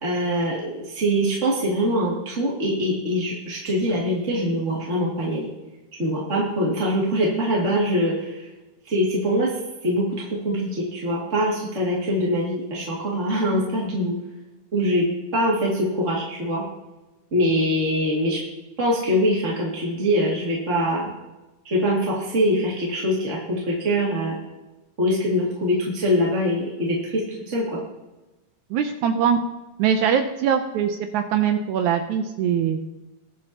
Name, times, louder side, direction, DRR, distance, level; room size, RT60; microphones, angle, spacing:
voice 1, 0.0-5.5 6.0-8.4 8.9-9.5 9.8-14.1 14.7-15.1 15.3-16.6 17.3-18.4 18.8-21.1 21.6-24.4 25.0-27.8, equal, 25° right, -5 dB, 2.3 m, -23 dB
voice 2, 28.7-29.4 29.8-32.9, right 8 dB, 75° right, 7 dB, 1.8 m, -22 dB
21.5 x 7.4 x 2.9 m, 1.1 s
omnidirectional pair, 3.9 m